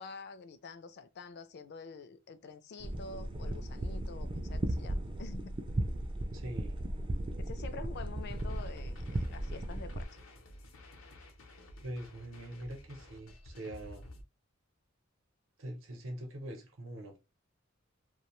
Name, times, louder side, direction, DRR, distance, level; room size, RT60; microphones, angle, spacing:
voice 1, 0.0-5.6 5.8-6.0 7.4-10.1, left 4 dB, 55° left, 0.4 m, -47 dB
sound 1, 2.8-10.0, right 1 dB, 25° right, 0.3 m, -36 dB
voice 2, 6.3-6.8 11.8-14.0 15.6-17.2, right 1 dB, 70° right, 0.7 m, -43 dB
sound 2, 8.2-14.2, left 1 dB, 90° left, 0.6 m, -52 dB
2.5 x 2.1 x 2.9 m
head